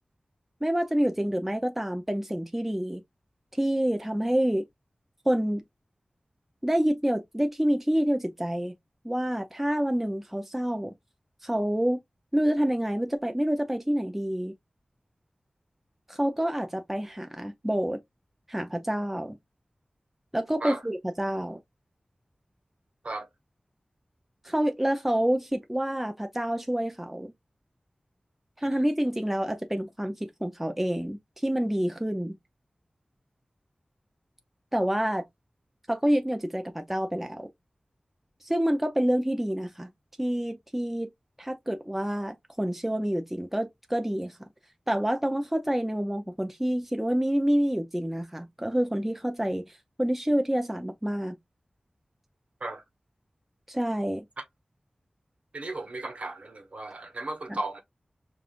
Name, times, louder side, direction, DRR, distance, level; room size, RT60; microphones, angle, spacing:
voice 1, 0.6-3.0 3.6-4.6 5.3-5.6 6.6-8.7 9.0-10.9 11.4-12.0 12.3-14.5 16.1-18.0 18.5-19.4 20.3-21.6 24.4-27.3 28.6-32.4 34.7-35.2 35.9-37.5 38.4-39.9 40.2-41.1 41.4-44.4 44.9-51.4 53.7-54.3 57.5-57.6, equal, 10° right, 0.6 m, -27 dB
voice 2, 55.5-57.8, right 2 dB, 60° right, 1.1 m, -35 dB
5.2 x 2.5 x 2.5 m
wide cardioid pair, 80°, 2 cm